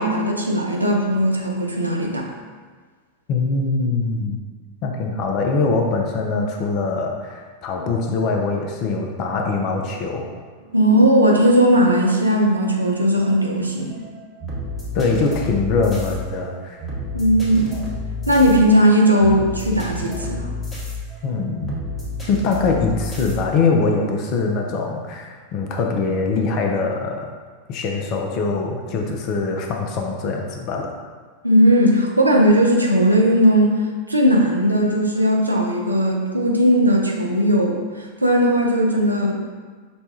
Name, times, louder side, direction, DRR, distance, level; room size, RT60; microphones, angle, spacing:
voice 1, 0.0-2.3 10.7-14.0 17.1-17.8 18.3-20.5 31.4-33.7 34.1-37.8 38.2-39.4, equal, 85° right, 0 dB, 0.5 m, -17 dB
voice 2, 3.3-4.4 4.8-10.2 14.9-16.8 21.2-21.7 22.2-27.3 27.7-30.9, left 4 dB, 40° left, 2 dB, 0.5 m, -23 dB
sound 1, 9.7-23.7, left 1 dB, 15° left, 1.1 m, -32 dB
5.2 x 2.3 x 2.8 m, 1.5 s
figure-of-eight pair, 90°, 0 cm